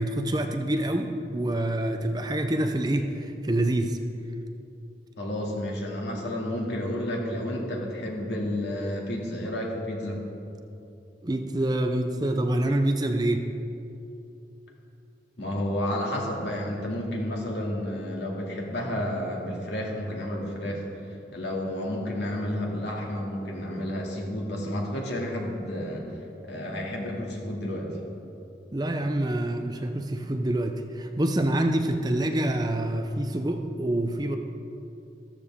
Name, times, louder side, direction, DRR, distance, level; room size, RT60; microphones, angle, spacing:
voice 1, 0.0-4.0 11.2-13.5 28.7-34.4, right 1 dB, 25° right, 5 dB, 0.6 m, -26 dB
voice 2, 5.2-10.2 15.4-20.8 21.3-26.1 26.4-28.0, left 1 dB, 85° left, -2 dB, 2.3 m, -31 dB
13.5 x 13.5 x 3.7 m, 2.7 s
head